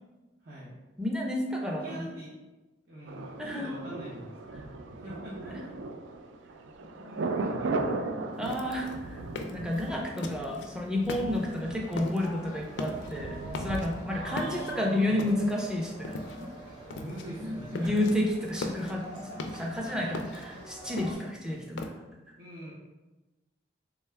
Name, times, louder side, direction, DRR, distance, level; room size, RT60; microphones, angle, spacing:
voice 1, 0.4-0.7 1.6-2.4 2.9-4.3 4.6-5.8 7.0-8.4 14.1-15.3 16.9-18.1 19.6-20.1 21.5-21.6 22.4-22.7, right 1 dB, 70° right, -8 dB, 0.7 m, -43 dB
voice 2, 1.0-2.1 3.4-3.7 5.4-5.6 7.0-7.1 8.4-9.2 9.5-16.5 17.4-21.9, left 1 dB, 5° right, -1 dB, 0.4 m, -31 dB
Thunder, 3.1-14.9 15.2-15.3, right 3 dB, 90° right, 0.3 m, -37 dB
sound 1, 8.4-10.7 11.0-11.6 11.9-12.3 12.6-13.2 13.5-14.0 14.4-15.6 16.0-16.6 16.9-17.3 17.6-18.1 18.5-19.8 20.1-21.9, left 2 dB, 70° left, 0.3 m, -39 dB
sound 2, 11.3-21.1, right 1 dB, 25° right, 0.9 m, -45 dB
3.6 x 2.3 x 3.3 m, 1.1 s
head